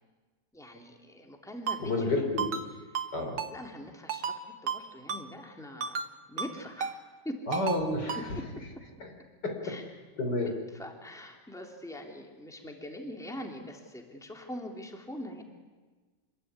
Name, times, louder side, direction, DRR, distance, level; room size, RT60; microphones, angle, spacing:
voice 1, 0.5-2.1 2.9-3.1 3.5-4.3 4.6-7.0 7.2-7.4 8.1-8.4 9.6-9.8 10.5-15.4, left 1 dB, ahead, 2 dB, 3.1 m, -43 dB
Ringtone, 1.7-1.8 2.4-2.7 2.9-3.1 3.4-3.5 4.1-4.4 4.7-4.8 5.1-5.2 5.8-6.1 6.4-6.5 6.8-6.9 7.5-7.8 8.1-8.2, right 6 dB, 85° right, 2.2 m, -32 dB
voice 2, 1.8-2.5 3.1-3.4 7.5-8.2 9.0-9.1 9.4-9.8 10.2-10.6, left 2 dB, 70° left, 3 dB, 4.8 m, -30 dB
27.5 x 22.0 x 9.8 m, 1.3 s
omnidirectional pair, 1.9 m